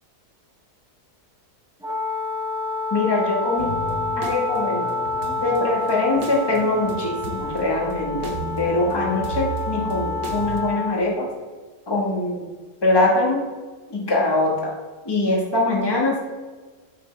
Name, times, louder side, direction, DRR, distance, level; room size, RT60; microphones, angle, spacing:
Wind instrument woodwind instrument, 1.8-11.0, left 3 dB, 5° right, 0.7 m, -28 dB
voice 1, 2.9-3.9 4.2-4.9 5.4-8.3 8.6-11.3 11.9-12.5 12.8-13.4 13.9-14.7 15.0-16.2, left 2 dB, 15° left, -2 dB, 1.2 m, -22 dB
sound 1, 3.6-10.6, right 4 dB, 55° right, 1.0 m, -34 dB
7.3 x 6.0 x 3.3 m, 1.4 s
omnidirectional pair, 1.7 m